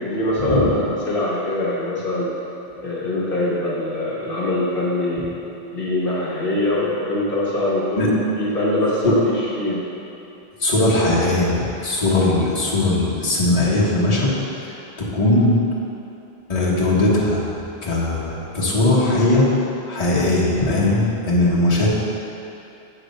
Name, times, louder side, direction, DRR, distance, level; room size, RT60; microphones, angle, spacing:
voice 1, 0.0-2.3 2.8-5.3 5.7-9.8, left 1 dB, 60° left, -7 dB, 1.1 m, -23 dB
voice 2, 10.6-14.3 14.6-14.7 15.0-15.5 16.5-17.4 17.8-19.5 19.9-21.9, left 2 dB, 35° left, -7 dB, 1.1 m, -19 dB
7.4 x 3.3 x 5.2 m, 2.8 s
omnidirectional pair, 1.1 m